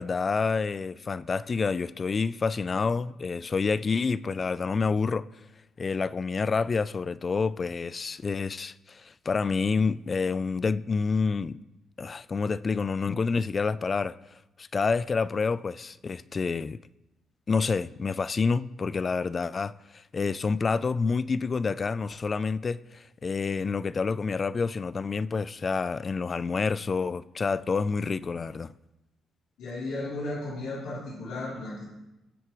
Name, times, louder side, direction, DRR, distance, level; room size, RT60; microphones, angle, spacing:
voice 1, 0.0-5.2 5.8-11.6 12.0-14.1 14.6-16.8 17.5-19.7 20.1-28.7, left 4 dB, 35° left, 0.4 m, -28 dB
voice 2, 29.6-31.8, left 2 dB, 80° left, 3.5 m, -34 dB
21.5 x 7.9 x 3.2 m
cardioid pair, 90°, 0 cm